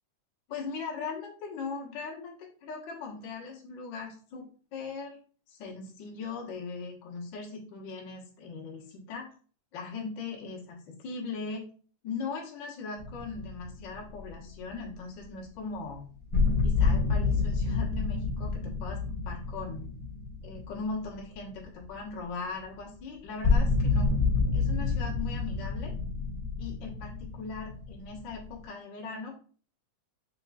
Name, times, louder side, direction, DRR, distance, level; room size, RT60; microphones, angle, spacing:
voice 1, 0.5-5.2 5.5-9.3 9.7-11.6 12.0-16.0 16.6-19.0 19.2-19.9 20.4-24.1 24.5-25.9 26.6-29.4, left 4 dB, 60° left, -4 dB, 1.2 m, -39 dB
sound 1, 13.0-14.3 14.7-14.8 15.7-15.8 16.3-21.6 22.0-22.1 22.6-22.7 23.4-28.6, left 4 dB, 10° right, 1.1 m, -28 dB
6.1 x 3.8 x 2.3 m, 0.43 s
omnidirectional pair, 3.7 m